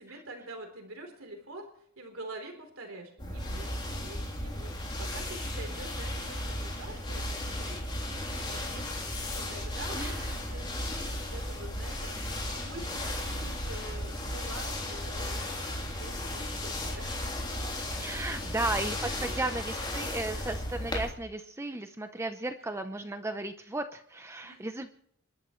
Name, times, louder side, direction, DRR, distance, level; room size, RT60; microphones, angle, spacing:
voice 1, 0.0-17.2 18.0-18.5 19.2-19.4 22.6-22.7 24.4-24.7, right 2 dB, 65° right, 3 dB, 3.7 m, -46 dB
sound 1, 3.2-21.1, left 1 dB, 20° left, 3.4 m, -35 dB
voice 2, 10.0-10.3 18.0-25.0, right 2 dB, 15° right, 7 dB, 0.7 m, -35 dB
29.0 x 12.5 x 3.2 m, 0.70 s
head